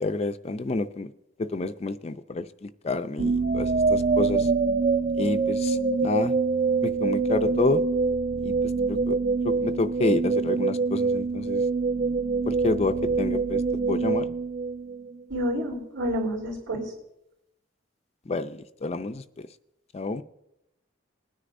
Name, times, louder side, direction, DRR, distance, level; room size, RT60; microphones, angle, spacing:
voice 1, 0.0-1.1 1.4-4.5 5.2-6.3 6.8-7.8 8.4-8.5 8.9-9.2 9.4-11.6 12.5-13.6 13.9-14.3 18.3-19.5 19.9-20.2, left 3 dB, 30° left, 10 dB, 0.4 m, -29 dB
sound 1, 3.2-15.2, right 4 dB, 40° right, 0.4 m, -25 dB
voice 2, 15.3-16.8, equal, 85° right, -8 dB, 3.5 m, -29 dB
20.0 x 9.9 x 2.6 m, 0.86 s
head